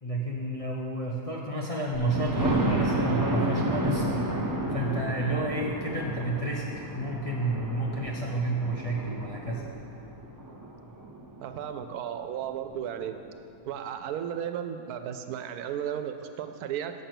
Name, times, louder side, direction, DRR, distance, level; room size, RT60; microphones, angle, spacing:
voice 1, 0.0-4.1 4.7-6.6 6.9-9.6, right 2 dB, 35° left, -4 dB, 0.6 m, -30 dB
Thunder, 1.9-11.7 12.2-12.3 12.7-12.8 13.1-13.2, right 1 dB, 20° right, 0.5 m, -31 dB
voice 2, 11.4-13.2 13.6-16.9, right 9 dB, 85° right, 8 dB, 1.1 m, -34 dB
7.2 x 6.7 x 6.0 m, 2.7 s
omnidirectional pair, 1.6 m